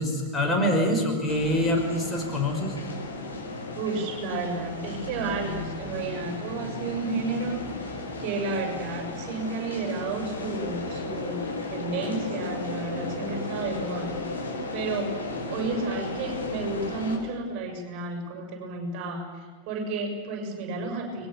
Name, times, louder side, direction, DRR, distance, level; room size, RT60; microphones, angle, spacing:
voice 1, 0.0-2.8, left 1 dB, 15° left, 1 dB, 5.4 m, -25 dB
sound 1, 1.3-17.2, left 2 dB, 75° left, 6.3 m, -34 dB
voice 2, 3.8-15.1 15.5-21.3, right 3 dB, 40° right, 3 dB, 7.0 m, -32 dB
30.0 x 21.5 x 7.3 m, 1.5 s
figure-of-eight pair, 90°, 0 cm